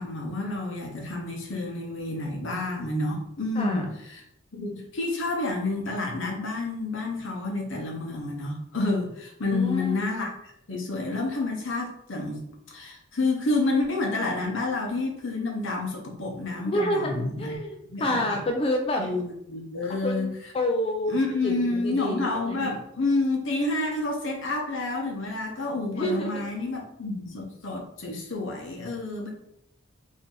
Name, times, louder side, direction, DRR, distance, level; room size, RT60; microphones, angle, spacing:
voice 1, 0.0-4.2 4.5-10.3 10.7-12.4 12.7-17.6 17.9-18.4 19.0-20.3 21.1-29.3, left 2 dB, 75° left, 1 dB, 0.8 m, -29 dB
voice 2, 9.5-10.0 16.7-19.0 19.9-22.7 25.9-26.5, left 1 dB, 30° left, 2 dB, 0.3 m, -28 dB
2.7 x 2.6 x 3.7 m, 0.76 s
head